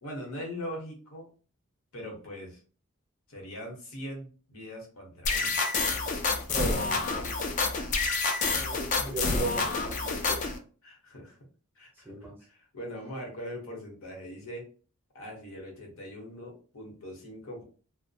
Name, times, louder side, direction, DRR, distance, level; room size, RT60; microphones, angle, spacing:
voice 1, 0.0-1.3 1.9-2.6 3.3-5.6 10.1-10.4 10.8-11.5 11.8-14.7 15.1-17.6, equal, 80° left, 0 dB, 0.9 m, -41 dB
sound 1, 5.2-10.6, left 4 dB, 35° left, 0.3 m, -28 dB
voice 2, 6.3-8.0 8.4-10.4 12.0-12.4, right 2 dB, 10° right, -1 dB, 0.6 m, -38 dB
2.3 x 2.0 x 2.6 m, 0.38 s
head